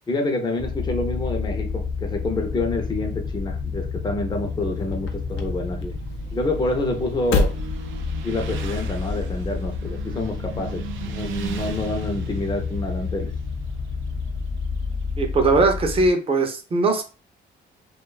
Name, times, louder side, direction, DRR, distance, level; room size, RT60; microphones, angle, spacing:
voice 1, 0.1-6.0 6.3-7.6 8.2-13.3, left 2 dB, 20° left, 3 dB, 0.6 m, -27 dB
sound 1, 0.6-16.1, left 5 dB, 50° left, 0.9 m, -30 dB
sound 2, 4.3-9.3, left 3 dB, 70° left, 0.5 m, -30 dB
Motorcycle, 5.6-15.4, right 9 dB, 75° right, 0.4 m, -39 dB
voice 2, 15.2-17.0, right 3 dB, 30° right, 4 dB, 0.5 m, -20 dB
2.5 x 2.2 x 2.3 m, 0.34 s
cardioid pair, 90°, 20 cm